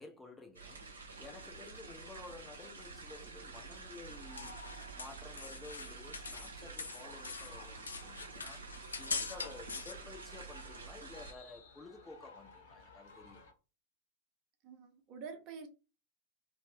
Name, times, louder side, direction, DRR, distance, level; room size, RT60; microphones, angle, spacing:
voice 1, 0.0-4.6 4.9-13.4, left 3 dB, 10° left, 0.5 m, -53 dB
sound 1, 0.5-11.3, right 4 dB, 75° right, 0.7 m, -49 dB
sound 2, 4.0-6.5 6.8-9.9, left 5 dB, 75° left, 0.3 m, -42 dB
sound 3, 4.1-13.5, left 3 dB, 55° left, 0.9 m, -57 dB
voice 2, 14.6-15.7, right 5 dB, 40° right, 0.6 m, -47 dB
2.5 x 2.1 x 3.2 m
figure-of-eight pair, 90°, 0 cm